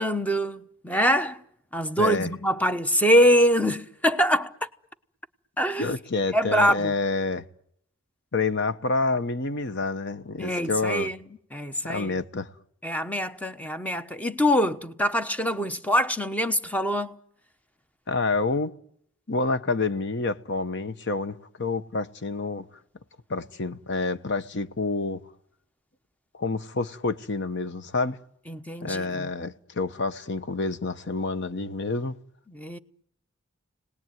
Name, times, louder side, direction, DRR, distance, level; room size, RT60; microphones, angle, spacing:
voice 1, 0.0-1.4 1.7-4.5 5.6-5.9 6.3-6.9 10.4-11.2 11.5-12.1 12.8-17.1 28.5-29.3 32.5-32.8, equal, 5° left, 1.0 m, -24 dB
voice 2, 2.0-2.3 5.8-7.4 8.3-11.1 11.9-12.5 18.1-18.7 19.3-22.7 23.3-25.2 26.3-28.2 28.8-32.2, left 3 dB, 60° left, 1.1 m, -28 dB
29.5 x 19.0 x 9.3 m
head